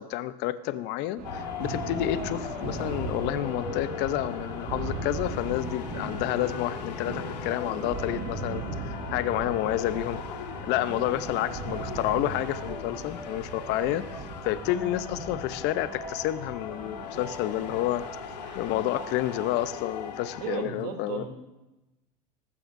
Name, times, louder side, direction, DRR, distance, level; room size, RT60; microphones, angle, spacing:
voice 1, 0.0-10.2 10.6-14.2 14.4-18.0 18.5-21.2, left 14 dB, 55° left, 13 dB, 0.8 m, -30 dB
sound 1, 1.2-20.6, left 7 dB, 85° left, 1.6 m, -39 dB
Thunder, 1.2-18.9, right 4 dB, 50° right, 4.7 m, -39 dB
sound 2, 3.7-19.7, right 3 dB, 15° right, 4.0 m, -45 dB
voice 2, 20.4-21.3, right 7 dB, 80° right, 3 dB, 3.0 m, -34 dB
18.5 x 14.5 x 2.7 m, 1.0 s
hypercardioid pair, 95°, 21 cm